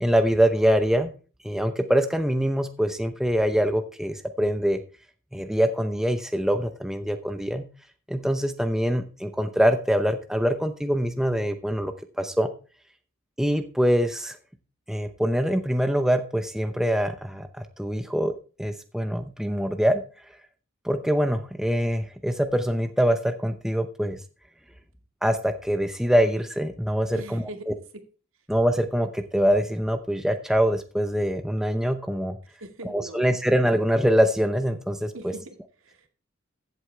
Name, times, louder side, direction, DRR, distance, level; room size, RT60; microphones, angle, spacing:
voice 1, 0.0-1.1 1.4-4.8 5.3-7.6 8.1-12.5 13.4-14.4 14.9-17.5 17.8-18.3 18.6-20.0 20.8-24.2 25.2-27.7 28.5-32.4 32.9-35.3, equal, ahead, 8 dB, 0.6 m, -24 dB
voice 2, 27.1-27.8 32.5-33.4 35.1-36.1, right 1 dB, 75° right, 6 dB, 1.9 m, -42 dB
14.5 x 8.0 x 3.3 m, 0.35 s
head